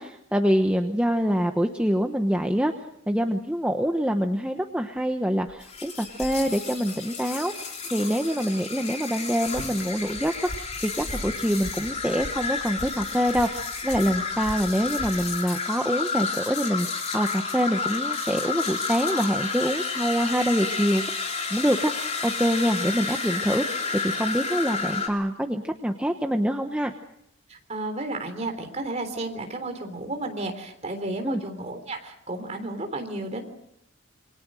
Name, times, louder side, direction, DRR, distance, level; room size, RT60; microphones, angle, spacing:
voice 1, 0.0-2.7 3.1-21.0 21.5-26.9 31.2-31.4, equal, 5° right, 4 dB, 1.0 m, -25 dB
sound 1, 5.0-5.1 5.4-6.9 9.5-9.9 10.8-12.0, equal, 85° right, 4.4 m, -42 dB
sound 2, 5.6-25.1, left 5 dB, 30° left, 3.4 m, -31 dB
sound 3, 10.0-15.4, equal, 65° left, 3.2 m, -42 dB
voice 2, 27.5-33.4, right 2 dB, 30° right, 5 dB, 3.6 m, -32 dB
28.0 x 23.5 x 6.4 m, 0.75 s
head